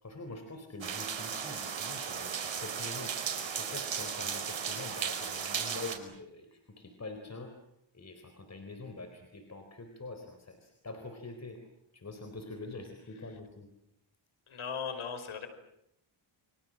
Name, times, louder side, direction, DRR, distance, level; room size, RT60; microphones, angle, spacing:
voice 1, 0.0-7.5 7.9-11.6 11.9-13.7, left 2 dB, 35° left, 6 dB, 4.2 m, -45 dB
sound 1, 0.8-6.0, right 7 dB, 65° right, 5.2 m, -36 dB
voice 2, 14.5-15.5, left 6 dB, 75° left, 10 dB, 5.0 m, -37 dB
29.5 x 25.5 x 7.6 m, 0.79 s
cardioid pair, 95°, 49 cm